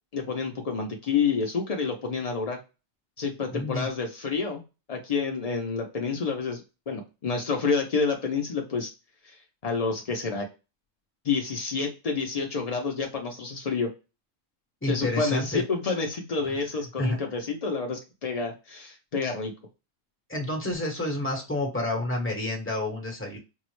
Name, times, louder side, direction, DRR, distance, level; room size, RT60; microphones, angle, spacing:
voice 1, 0.1-2.6 3.2-4.6 4.9-8.9 9.2-9.4 9.6-10.5 11.2-13.9 14.9-19.5, left 5 dB, 85° left, 1 dB, 0.3 m, -29 dB
voice 2, 3.5-3.9 14.8-15.6 17.0-17.2 20.3-23.4, left 1 dB, 10° left, 1 dB, 0.8 m, -29 dB
4.5 x 2.0 x 3.0 m, 0.29 s
omnidirectional pair, 1.4 m